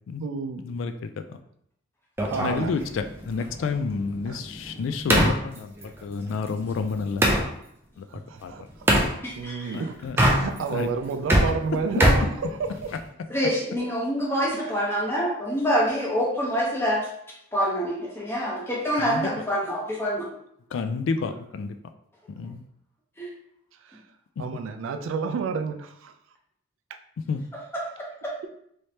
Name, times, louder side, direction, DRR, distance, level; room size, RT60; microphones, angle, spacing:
voice 1, 0.2-0.6 2.3-2.7 4.3-4.4 8.1-8.6 9.4-12.9 23.9-24.0 24.4-26.1, right 5 dB, 75° right, 7 dB, 0.3 m, -30 dB
sound 1, 2.2-7.5 8.9-9.1 10.0-10.8 11.1-13.1, equal, 10° right, 0.4 m, -24 dB
voice 2, 2.4-5.7 6.0-7.3 8.0-8.1 8.4-8.5 10.0-10.2 10.7-10.9 19.0-19.3 20.7-21.7 22.4-22.6 24.4-24.5 27.3-27.4, left 5 dB, 70° left, 8 dB, 0.3 m, -29 dB
voice 3, 9.2-9.8 13.3-17.1 17.5-20.3 23.2-23.3, equal, 10° left, -4 dB, 0.8 m, -26 dB
3.2 x 3.1 x 2.8 m, 0.70 s
head